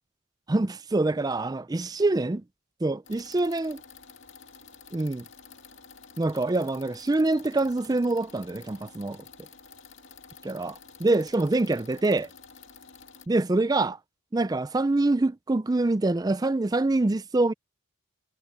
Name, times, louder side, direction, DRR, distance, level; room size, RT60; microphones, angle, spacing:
voice 1, 0.5-2.4 2.8-3.8 4.9-5.3 6.2-9.2 10.4-12.3 13.3-14.0 14.3-17.5, right 2 dB, 20° right, 0.4 m, -25 dB
sound 1, 3.0-13.3, left 6 dB, 65° left, 2.3 m, -50 dB
head